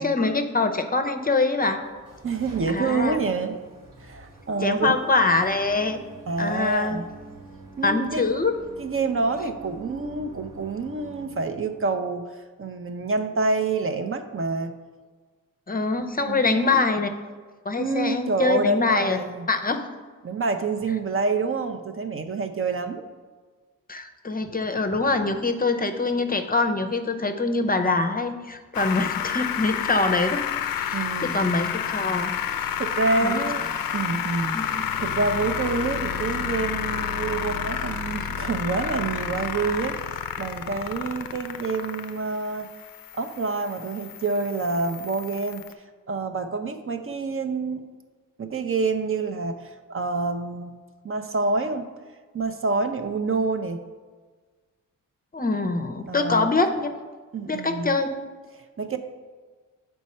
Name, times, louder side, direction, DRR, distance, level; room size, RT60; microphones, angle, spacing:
voice 1, 0.0-1.8 2.7-3.2 4.6-6.0 6.4-7.0 7.8-8.6 15.7-17.1 17.6-19.2 19.5-19.8 23.9-30.5 30.8-32.4 33.2-33.4 34.5-34.6 55.3-56.9 57.5-58.1, left 3 dB, 25° left, 7 dB, 0.6 m, -24 dB
sound 1, 1.7-12.0, right 3 dB, 65° right, 1.4 m, -45 dB
voice 2, 2.2-3.6 4.0-4.9 6.3-7.1 7.8-8.3 8.8-12.3 12.6-14.7 16.3-16.8 17.8-19.5 20.2-23.0 30.9-31.3 32.8-33.7 33.9-42.7 43.1-45.6 46.1-47.8 48.4-50.7 51.0-51.9 52.3-53.8 56.1-56.5 57.3-58.0 58.8-59.0, right 3 dB, 40° right, 6 dB, 0.6 m, -27 dB
sound 2, 28.7-45.7, left 9 dB, 90° left, 0.5 m, -30 dB
sound 3, 31.2-39.5, right 3 dB, 85° right, 0.9 m, -44 dB
6.1 x 4.5 x 4.2 m, 1.4 s
cardioid pair, 60°, 34 cm